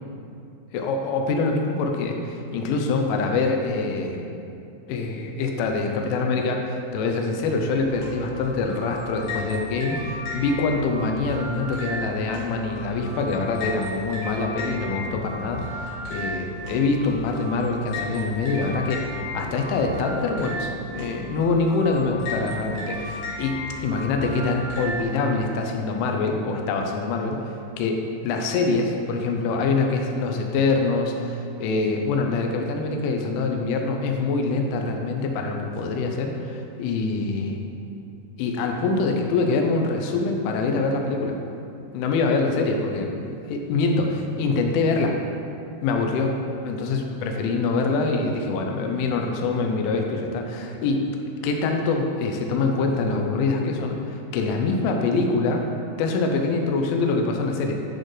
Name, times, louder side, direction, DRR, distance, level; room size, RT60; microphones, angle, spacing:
voice 1, 0.7-4.2 4.9-19.0 19.3-27.5 27.8-37.6 38.4-41.4 41.9-44.1 44.4-45.2 45.8-46.4 46.6-51.0 51.4-55.7 56.0-57.7, left 3 dB, 85° left, 3 dB, 3.0 m, -24 dB
sound 1, 7.7-25.0, left 1 dB, 65° left, 3.2 m, -35 dB
10.5 x 4.3 x 3.2 m, 2.7 s
omnidirectional pair, 5.6 m